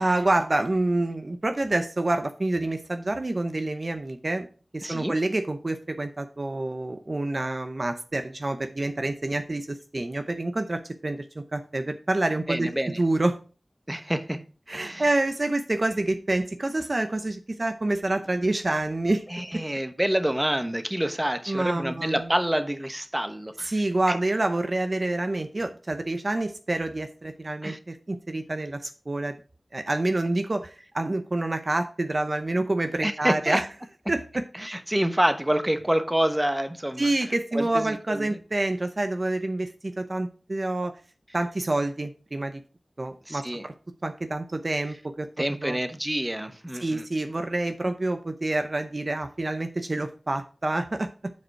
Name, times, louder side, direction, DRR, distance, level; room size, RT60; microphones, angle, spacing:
voice 1, 0.0-4.5 4.7-13.4 14.7-19.4 21.5-22.3 23.6-29.3 29.7-33.7 34.1-34.4 37.0-41.0 41.3-42.6 43.0-43.7 44.0-45.3 45.6-45.8 46.8-51.1, right 2 dB, 50° right, 0.8 m, -27 dB
voice 2, 4.8-5.1 12.5-13.0 13.9-14.4 14.7-15.0 19.3-23.8 24.1-24.2 27.6-27.8 33.0-33.6 34.6-37.1 37.5-38.4 43.3-43.7 45.4-47.0, right 1 dB, 15° right, 1.0 m, -27 dB
9.5 x 5.1 x 4.7 m
wide cardioid pair, 55°, 0 cm